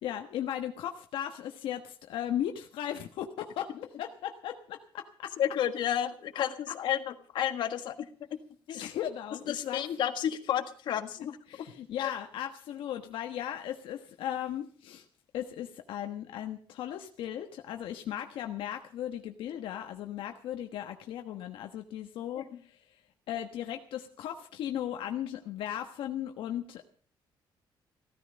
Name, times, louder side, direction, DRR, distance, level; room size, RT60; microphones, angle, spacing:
voice 1, 0.0-5.3 6.3-6.4 8.7-9.8 11.5-15.0 15.3-22.8 23.3-26.8, left 10 dB, 75° left, 5 dB, 1.3 m, -37 dB
voice 2, 5.4-8.4 8.7-8.9 9.5-11.4 12.0-12.1 22.4-22.5, left 10 dB, 60° left, 8 dB, 1.6 m, -31 dB
16.0 x 14.0 x 5.2 m, 0.43 s
cardioid pair, 165°, 9 cm